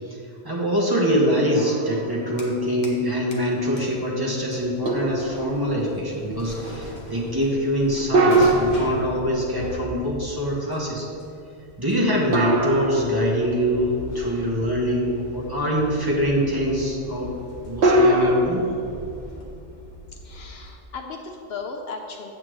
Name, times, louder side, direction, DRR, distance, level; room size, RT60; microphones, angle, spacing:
voice 1, 0.1-11.1 11.8-17.3 17.6-18.6, equal, 20° right, -4 dB, 1.1 m, -24 dB
sound 1, 1.5-2.4 2.9-3.0 4.9-5.8 8.1-9.7 12.3-13.7 17.8-18.3, right 1 dB, 65° right, 1.2 m, -22 dB
sound 2, 2.0-3.0 3.3-20.8, left 1 dB, 40° left, 1.1 m, -40 dB
voice 2, 20.2-22.3, left 4 dB, 65° left, 3 dB, 0.9 m, -36 dB
8.3 x 8.2 x 3.1 m, 2.5 s
omnidirectional pair, 1.2 m